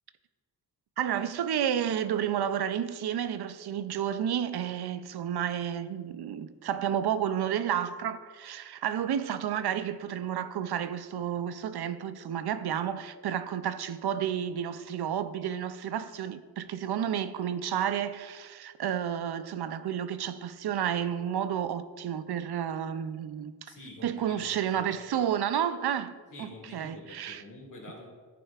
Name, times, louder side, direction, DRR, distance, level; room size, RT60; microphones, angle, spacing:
voice 1, 1.0-23.5 24.0-27.4, right 9 dB, 85° right, 0.5 m, -31 dB
voice 2, 23.7-25.3 26.3-28.1, left 1 dB, 55° left, 2.1 m, -47 dB
11.0 x 8.5 x 2.4 m
wide cardioid pair, 100°, 38 cm